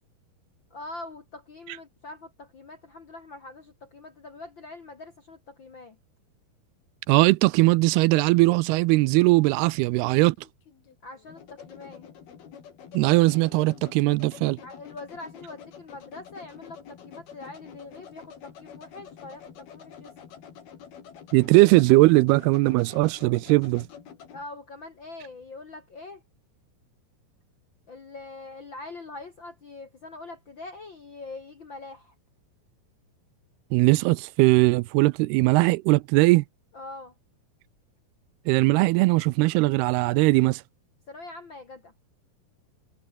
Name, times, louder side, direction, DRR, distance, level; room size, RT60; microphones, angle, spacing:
voice 1, 0.7-6.0 11.0-12.1 14.6-20.1 24.3-26.2 27.9-32.1 36.7-37.1 41.1-41.9, left 2 dB, 45° left, 1.6 m, -43 dB
voice 2, 7.1-10.4 12.9-14.6 21.3-23.9 33.7-36.4 38.5-40.6, right 22 dB, 85° right, 2.5 m, -20 dB
sound 1, 9.1-24.4, left 8 dB, 70° left, 5.1 m, -48 dB
omnidirectional pair, 4.6 m